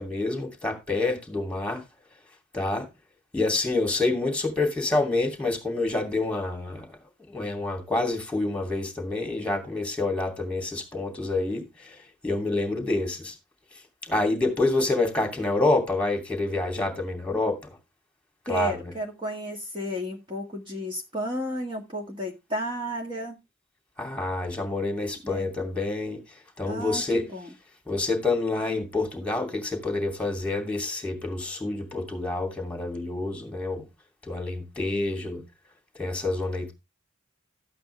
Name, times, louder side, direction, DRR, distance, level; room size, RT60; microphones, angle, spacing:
voice 1, 0.0-1.8 2.5-2.9 3.3-7.0 7.3-13.3 14.0-17.6 18.5-18.9 24.0-26.2 26.6-27.3 27.9-33.8 34.2-35.4 36.0-36.7, left 2 dB, 5° left, 2.6 m, -27 dB
voice 2, 18.5-23.4 25.2-25.5 26.7-27.5, equal, 25° right, 1.8 m, -32 dB
13.0 x 8.5 x 3.2 m
head